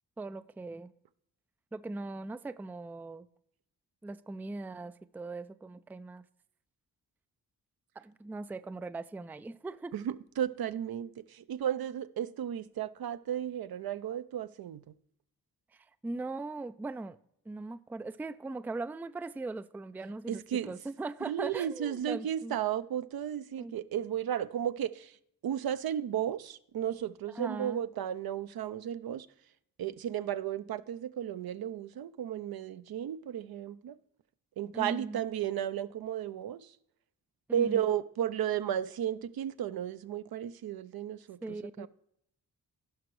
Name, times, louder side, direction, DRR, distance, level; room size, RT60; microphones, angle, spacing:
voice 1, 0.2-0.9 1.7-3.3 4.0-6.2 8.0-9.9 15.7-17.2 17.5-22.5 23.6-23.8 27.3-27.8 34.7-35.2 37.5-37.8 41.4-41.9, right 3 dB, 5° right, 0.4 m, -40 dB
voice 2, 9.9-14.9 20.3-20.7 21.3-25.2 25.4-29.3 29.8-34.0 34.6-36.8 37.5-41.9, right 10 dB, 65° right, 0.6 m, -34 dB
16.0 x 5.9 x 3.1 m
supercardioid pair, 50°, 40 cm